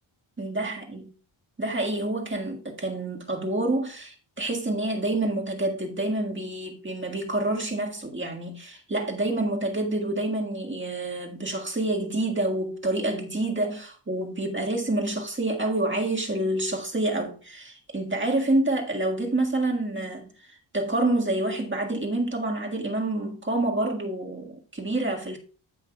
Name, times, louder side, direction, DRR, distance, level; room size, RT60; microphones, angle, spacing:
voice 1, 0.4-1.0 1.6-25.4, right 2 dB, 25° right, 1.7 m, -28 dB
14.5 x 5.7 x 2.3 m
wide cardioid pair, 120°, 49 cm